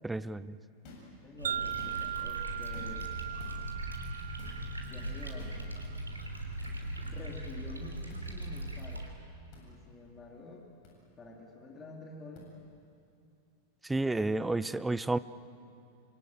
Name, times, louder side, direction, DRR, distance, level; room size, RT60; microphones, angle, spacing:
voice 1, 0.0-0.6 13.8-15.2, right 2 dB, 10° right, 16 dB, 0.7 m, -31 dB
sound 1, 0.8-1.1 1.6-2.2 2.7-3.1 3.4-3.6 4.4-4.6 5.4-5.6 6.6-6.8 8.1-8.2 9.5-9.7 10.8-10.9 12.3-12.5 14.0-14.1, left 3 dB, 40° left, 7.7 m, -52 dB
voice 2, 1.2-3.1 4.8-5.5 7.0-9.1 9.6-10.7 11.2-12.5, left 2 dB, 20° left, 0 dB, 3.5 m, -48 dB
Wind chime, 1.4-5.7, right 10 dB, 65° right, 0.6 m, -39 dB
sound 2, 1.4-9.1, right 1 dB, 80° right, 3.4 m, -40 dB
27.0 x 24.0 x 9.1 m, 2.6 s
figure-of-eight pair, 90°, 0 cm